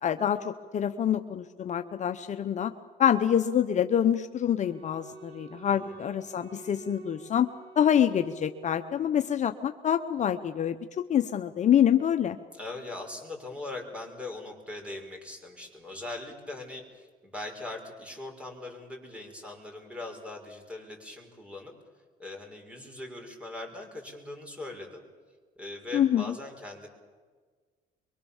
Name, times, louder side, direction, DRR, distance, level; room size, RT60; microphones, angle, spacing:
voice 1, 0.0-2.7 3.0-7.5 7.8-12.4 25.9-26.2, left 9 dB, 45° left, 8 dB, 0.9 m, -26 dB
Wind instrument woodwind instrument, 4.6-9.0, right 3 dB, 85° right, 7.6 m, -48 dB
voice 2, 12.5-21.7 22.2-25.0 25.6-26.9, left 2 dB, 5° right, 2 dB, 5.9 m, -41 dB
24.0 x 23.5 x 7.3 m, 1.5 s
cardioid pair, 110°, 17 cm